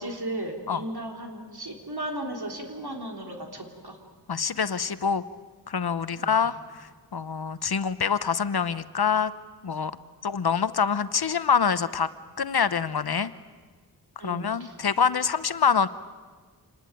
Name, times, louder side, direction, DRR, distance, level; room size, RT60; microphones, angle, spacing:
voice 1, 0.0-4.0 6.1-6.4 14.2-14.7, right 1 dB, 70° right, 1 dB, 3.6 m, -35 dB
voice 2, 4.3-5.2 5.7-9.3 9.6-9.9 10.2-12.1 12.4-13.3 14.2-15.9, left 6 dB, 70° left, 13 dB, 0.9 m, -25 dB
27.0 x 20.0 x 9.1 m, 1.5 s
wide cardioid pair, 65°, 39 cm